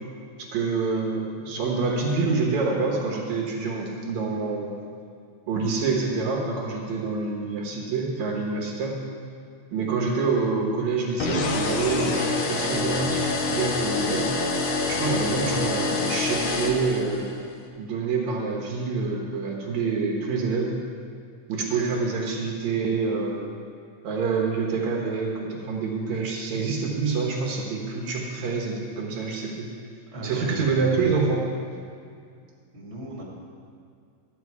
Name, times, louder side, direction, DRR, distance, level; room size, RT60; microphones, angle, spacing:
voice 1, 0.4-4.8 5.5-9.0 9.7-14.3 14.9-17.3 17.8-20.7 21.5-23.4 24.0-29.7 30.2-31.4, right 4 dB, 75° right, -1 dB, 2.5 m, -27 dB
sound 1, 11.2-17.4, left 3 dB, 65° left, 1.3 m, -26 dB
voice 2, 30.1-30.9 32.7-33.2, equal, 25° right, -5 dB, 2.4 m, -36 dB
13.0 x 8.9 x 4.7 m, 2.3 s
omnidirectional pair, 3.3 m